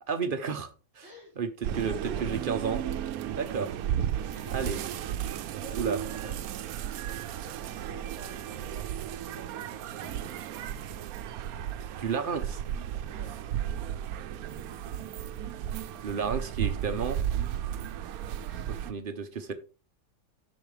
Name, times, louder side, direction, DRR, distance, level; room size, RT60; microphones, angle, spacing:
voice 1, 0.1-0.7 1.0-1.1 1.4-2.0 2.2-2.8 3.3-3.7 4.5-4.8 5.8-6.0 12.0-12.6 16.0-17.2 18.7-19.5, right 6 dB, 45° right, 0.8 m, -31 dB
voice 2, 1.0-2.6 3.3-3.5 4.0-10.5 13.1-13.3 18.5-18.7, left 2 dB, 40° left, 4.8 m, -52 dB
sound 1, 1.6-18.9, right 10 dB, 90° right, 1.1 m, -34 dB
sound 2, 8.7-17.4, right 2 dB, 20° right, 1.4 m, -54 dB
10.5 x 6.4 x 3.2 m
omnidirectional pair, 1.5 m